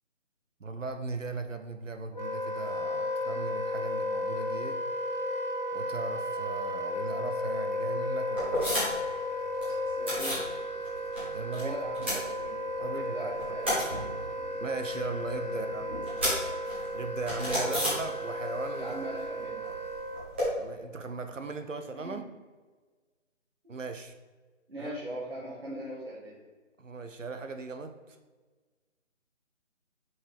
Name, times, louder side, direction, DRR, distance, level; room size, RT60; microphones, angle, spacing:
voice 1, 0.6-4.8 5.7-8.7 11.3-11.8 12.8-13.3 14.6-15.8 16.9-19.0 20.6-22.2 23.7-24.1 24.8-24.9 26.8-28.2, right 3 dB, 75° right, 7 dB, 0.8 m, -38 dB
Wind instrument woodwind instrument, 2.1-20.3, left 1 dB, 35° left, 0.6 m, -34 dB
sound 1, 8.4-9.1 9.4-10.5 10.8-11.6 11.9-12.9 13.2-18.6 18.8-20.5, equal, 10° right, 1.0 m, -33 dB
voice 2, 10.0-10.6 11.6-13.9 15.4-15.9 17.5-17.9 18.8-19.6 21.9-22.2 23.6-23.7 24.7-26.4, right 1 dB, 50° right, -7 dB, 1.7 m, -40 dB
5.8 x 5.4 x 3.5 m, 1.3 s
figure-of-eight pair, 160°, 38 cm